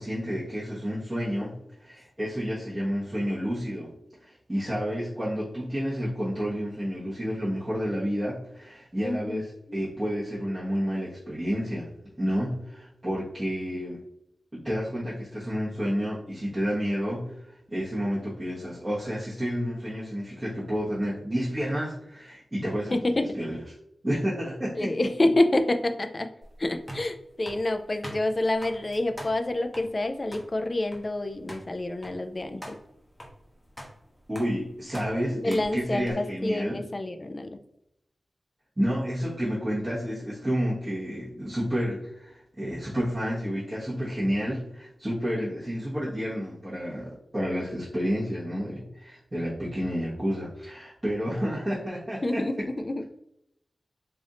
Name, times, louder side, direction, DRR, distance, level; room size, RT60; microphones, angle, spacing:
voice 1, 0.0-3.9 4.2-11.9 12.2-14.0 14.5-17.3 17.7-23.6 24.0-24.9 34.3-36.8 38.8-52.4, equal, 20° right, -9 dB, 1.1 m, -30 dB
voice 2, 9.0-9.4 22.9-23.3 24.8-26.3 26.6-32.8 35.3-37.5 45.4-45.6 52.2-53.0, left 1 dB, 35° left, 7 dB, 0.4 m, -27 dB
sound 1, 26.4-36.1, equal, 5° left, 0.9 m, -45 dB
3.4 x 2.6 x 3.7 m, 0.80 s
wide cardioid pair, 115°, 0 cm